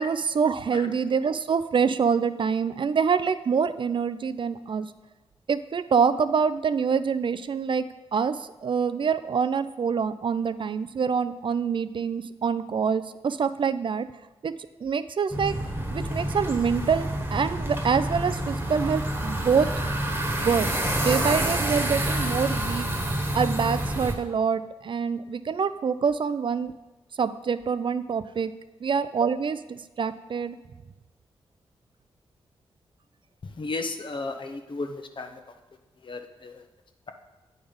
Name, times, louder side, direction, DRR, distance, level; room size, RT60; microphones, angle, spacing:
voice 1, 0.0-4.9 5.5-7.9 8.1-14.1 14.4-14.5 14.8-15.6 15.9-19.7 20.4-22.9 23.3-26.7 27.2-28.5 28.8-30.6, right 6 dB, 50° right, 13 dB, 0.4 m, -26 dB
sound 1, 15.3-24.1, right 1 dB, 20° right, 1.3 m, -28 dB
voice 2, 33.6-35.3 36.1-36.5, left 3 dB, 50° left, 5 dB, 0.8 m, -33 dB
8.5 x 4.0 x 5.2 m, 1.1 s
cardioid pair, 55°, 11 cm